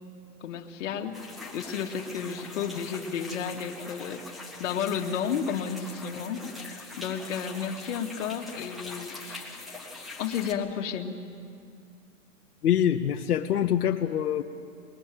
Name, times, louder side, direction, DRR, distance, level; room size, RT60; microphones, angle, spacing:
voice 1, 0.4-1.2 1.5-4.2 4.6-6.4 7.0-9.6 10.2-11.2, left 7 dB, 55° left, 4 dB, 1.7 m, -32 dB
sound 1, 1.1-10.5, left 3 dB, ahead, 0.5 m, -43 dB
voice 2, 12.6-14.4, left 10 dB, 80° left, 4 dB, 1.0 m, -25 dB
21.5 x 21.0 x 7.6 m, 2.4 s
hypercardioid pair, 155°, 45 cm